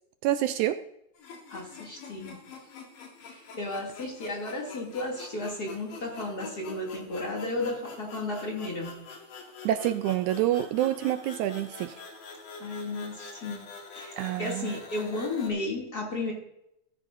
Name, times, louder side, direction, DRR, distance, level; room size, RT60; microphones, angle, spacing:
voice 1, 0.2-0.8 9.7-12.0 14.2-14.8, right 13 dB, 80° right, 10 dB, 1.9 m, -27 dB
sound 1, 1.2-15.5, left 4 dB, 85° left, 3.8 m, -45 dB
voice 2, 1.5-2.4 3.2-9.0 12.6-13.6 13.9-16.3, left 2 dB, 30° left, -1 dB, 2.8 m, -34 dB
15.0 x 14.5 x 2.6 m, 0.80 s
omnidirectional pair, 3.6 m